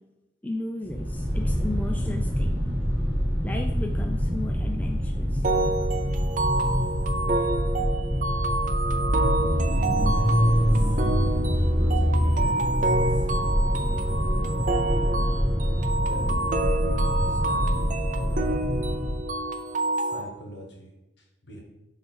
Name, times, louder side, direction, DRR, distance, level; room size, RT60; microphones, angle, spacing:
voice 1, 0.4-2.6 3.4-5.4, left 2 dB, 10° left, 3 dB, 0.3 m, -35 dB
Interior Prius drive w accelerate, 0.9-19.2, equal, 10° right, 1.9 m, -25 dB
sound 1, 5.4-20.2, right 2 dB, 45° right, 0.5 m, -28 dB
voice 2, 11.5-13.1 14.9-15.3 16.0-16.7 17.0-17.8 18.2-18.6 20.0-20.9 21.4-21.6, equal, 65° left, -1 dB, 1.7 m, -43 dB
6.7 x 3.3 x 4.7 m, 0.96 s
head